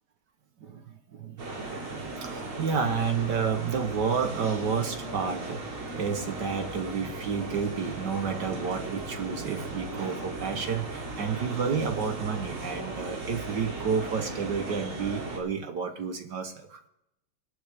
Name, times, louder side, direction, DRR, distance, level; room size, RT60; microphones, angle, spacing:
voice 1, 0.6-16.8, right 6 dB, 60° right, 6 dB, 1.5 m, -31 dB
sound 1, 1.4-15.4, right 2 dB, 85° right, 3.8 m, -37 dB
24.0 x 9.4 x 3.5 m, 0.81 s
omnidirectional pair, 2.3 m